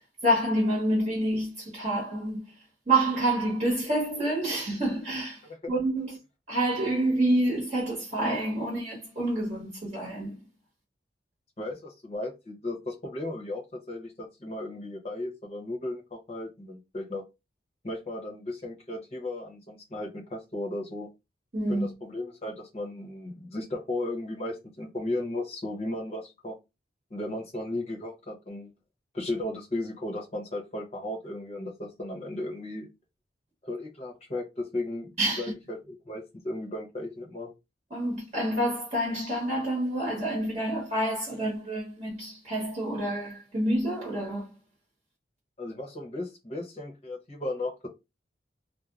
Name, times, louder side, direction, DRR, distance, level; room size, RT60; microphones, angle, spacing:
voice 1, 0.2-2.4 2.9-6.2 6.5-10.4 21.5-21.8 35.2-35.5 37.9-44.5, right 1 dB, 35° right, 0.9 m, -28 dB
voice 2, 11.6-17.2 17.8-21.1 21.7-26.6 27.1-28.7 29.1-32.9 33.6-37.5 45.6-47.9, left 1 dB, 35° left, 0.8 m, -35 dB
2.4 x 2.1 x 3.0 m
head